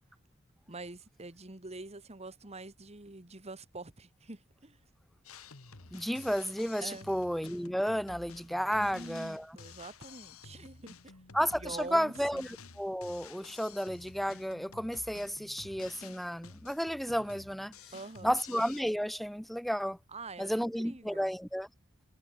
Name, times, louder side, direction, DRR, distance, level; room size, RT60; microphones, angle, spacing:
voice 1, 0.7-4.8 6.8-7.1 8.8-11.2 11.5-12.4 17.9-18.4 20.1-21.3, right 3 dB, 30° right, 1.9 m, -45 dB
Drum kit, 5.2-18.8, left 4 dB, 85° left, 1.9 m, -52 dB
voice 2, 5.9-9.5 11.3-17.7 18.2-20.0 20.4-21.7, equal, ahead, 0.8 m, -32 dB
head